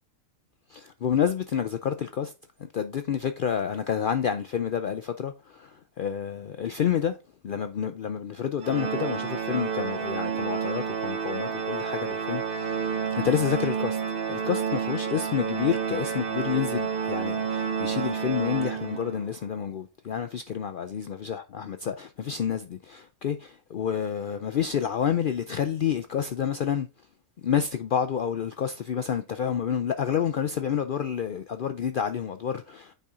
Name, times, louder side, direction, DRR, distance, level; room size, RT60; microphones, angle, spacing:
voice 1, 0.7-2.3 2.6-7.2 7.4-12.9 13.1-14.0 14.3-26.9 27.4-32.9, left 8 dB, 70° left, 0.5 m, -29 dB
Organ, 8.6-19.3, right 6 dB, 45° right, 1.2 m, -30 dB
9.0 x 4.3 x 3.6 m
omnidirectional pair, 1.4 m